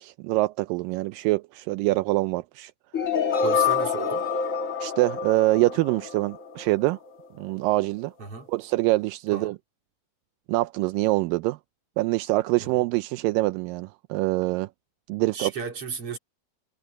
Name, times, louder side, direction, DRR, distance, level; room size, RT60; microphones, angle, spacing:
voice 1, 0.0-2.7 4.8-7.0 7.4-8.1 8.5-9.6 10.5-11.6 12.0-14.7 15.1-15.5, right 20 dB, 85° right, 2.2 m, -25 dB
sound 1, 2.9-6.9, left 6 dB, 40° left, 1.2 m, -27 dB
voice 2, 3.4-4.3 8.2-8.5 9.3-9.5 12.6-12.7 15.3-16.2, right 5 dB, 40° right, 4.3 m, -34 dB
omnidirectional pair, 4.0 m